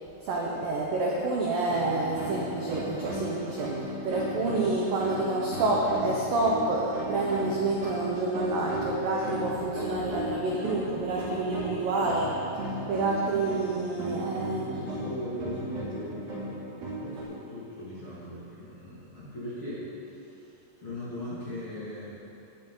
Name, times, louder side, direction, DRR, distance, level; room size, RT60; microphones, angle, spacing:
voice 1, 0.2-12.3 12.9-14.7, right 2 dB, 75° right, -3 dB, 2.0 m, -28 dB
sound 1, 1.7-17.2, right 1 dB, 50° right, 4.3 m, -36 dB
voice 2, 11.9-12.4 14.6-22.1, left 1 dB, 35° left, -10 dB, 2.2 m, -39 dB
17.0 x 10.5 x 3.9 m, 2.8 s
omnidirectional pair, 5.7 m